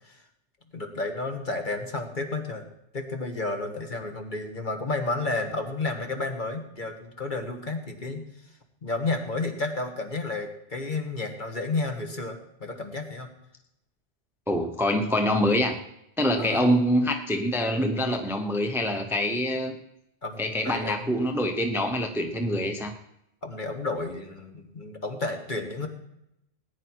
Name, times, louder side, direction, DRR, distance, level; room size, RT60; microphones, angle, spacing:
voice 1, 0.7-2.6 2.9-8.3 8.8-13.3 16.4-16.8 20.2-21.2 23.4-25.9, left 3 dB, 45° left, 4 dB, 1.8 m, -31 dB
voice 2, 14.5-15.8 16.2-19.8 20.4-22.9, equal, ahead, 5 dB, 0.9 m, -25 dB
19.0 x 10.0 x 4.6 m, 0.81 s
omnidirectional pair, 1.2 m